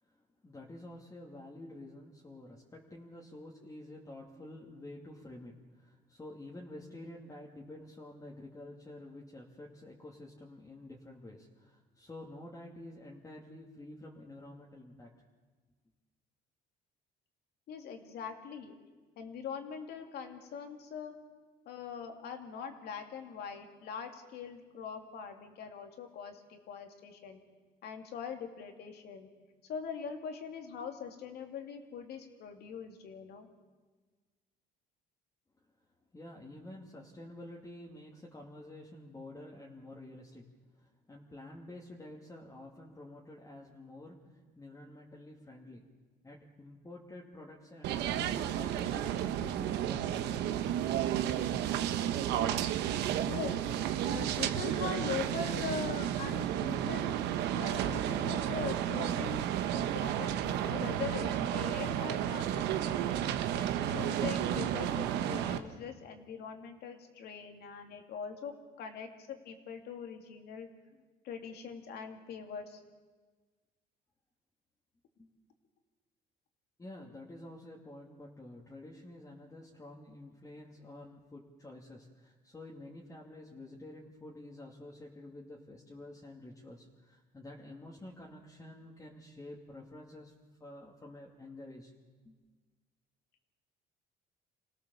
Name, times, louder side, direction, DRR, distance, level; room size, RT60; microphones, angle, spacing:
voice 1, 0.0-15.1 36.1-40.5 40.8-45.9 46.2-50.7 75.2-75.3 76.8-90.3 90.6-91.9 92.2-92.4, left 1 dB, 20° left, -4 dB, 2.5 m, -49 dB
voice 2, 17.7-18.7 19.2-21.1 21.7-27.4 27.8-29.3 29.7-33.5 53.3-53.6 54.1-57.1 57.5-59.4 59.7-63.3 63.9-68.5 68.8-70.7 71.2-72.8, left 6 dB, 70° left, 4 dB, 2.8 m, -42 dB
sound 1, 47.8-65.6, right 11 dB, 85° right, 1.2 m, -32 dB
27.0 x 17.5 x 7.1 m, 1.4 s
cardioid pair, 110°, 17 cm